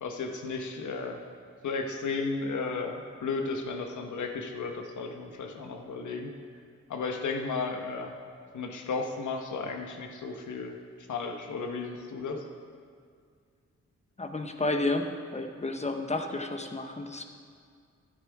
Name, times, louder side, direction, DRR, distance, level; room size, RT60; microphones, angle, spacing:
voice 1, 0.0-1.2 1.6-6.3 6.9-8.1 8.5-12.5, left 4 dB, 85° left, 4 dB, 1.2 m, -34 dB
voice 2, 14.2-15.1 15.3-17.2, left 2 dB, 25° left, 5 dB, 0.9 m, -31 dB
13.0 x 9.2 x 4.8 m, 2.2 s
wide cardioid pair, 105°, 29 cm